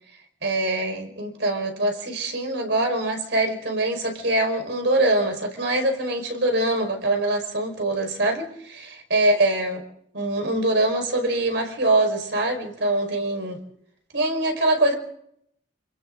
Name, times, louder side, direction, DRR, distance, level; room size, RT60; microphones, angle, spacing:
voice 1, 0.4-9.8 10.1-13.6 14.1-14.9, right 2 dB, 70° right, 5 dB, 5.0 m, -23 dB
28.5 x 28.5 x 3.9 m, 0.70 s
head